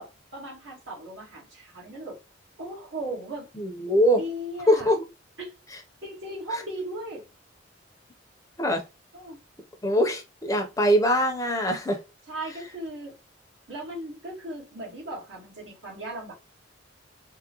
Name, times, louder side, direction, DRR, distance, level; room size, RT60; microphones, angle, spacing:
voice 1, 0.0-2.2 2.6-3.5 4.1-4.9 5.4-5.5 6.0-7.3 9.1-9.4 12.3-13.1 13.7-16.3, right 1 dB, 75° right, 1.7 m, -37 dB
voice 2, 3.6-4.2 4.7-5.0 8.6-8.8 9.8-12.0, equal, 15° left, 0.6 m, -22 dB
3.5 x 2.1 x 2.9 m
head